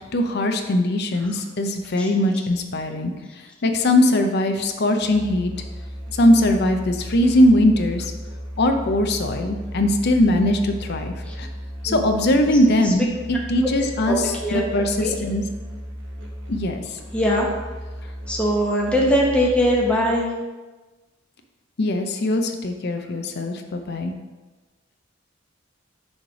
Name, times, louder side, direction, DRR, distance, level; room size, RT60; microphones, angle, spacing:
voice 1, 0.1-5.5 6.1-8.1 8.6-11.5 11.8-13.1 13.5-15.4 16.5-17.0 21.8-24.1, left 1 dB, 55° left, 5 dB, 0.6 m, -20 dB
Musical instrument, 5.0-20.3, equal, 65° right, 1.0 m, -35 dB
voice 2, 14.0-14.7 15.0-15.1 17.1-17.5 18.3-20.3, equal, 5° left, -3 dB, 0.9 m, -21 dB
6.4 x 3.3 x 5.8 m, 1.2 s
head